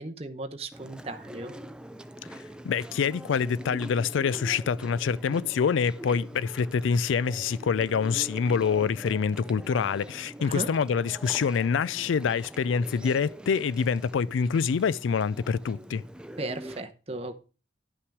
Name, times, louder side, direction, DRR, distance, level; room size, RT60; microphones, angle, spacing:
voice 1, 0.0-1.5 10.5-10.7 16.4-17.4, right 2 dB, 30° right, 0.9 m, -36 dB
Chewing mastication, 0.7-16.8, right 1 dB, 5° right, 0.4 m, -44 dB
voice 2, 2.6-16.0, left 6 dB, 85° left, 0.4 m, -26 dB
11.5 x 5.8 x 4.7 m
head